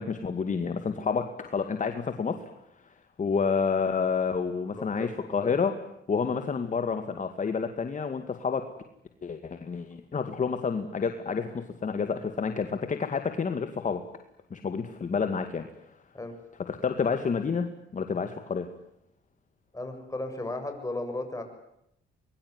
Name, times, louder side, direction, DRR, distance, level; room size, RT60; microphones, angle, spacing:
voice 1, 0.0-2.4 3.2-5.7 6.1-8.6 9.2-14.0 14.5-15.7 16.7-18.7, left 5 dB, 40° left, 7 dB, 2.2 m, -29 dB
voice 2, 4.7-5.6 16.1-16.4 19.7-21.4, left 2 dB, 15° left, 5 dB, 7.4 m, -35 dB
25.0 x 22.0 x 9.8 m, 0.79 s
cardioid pair, 90°, 20 cm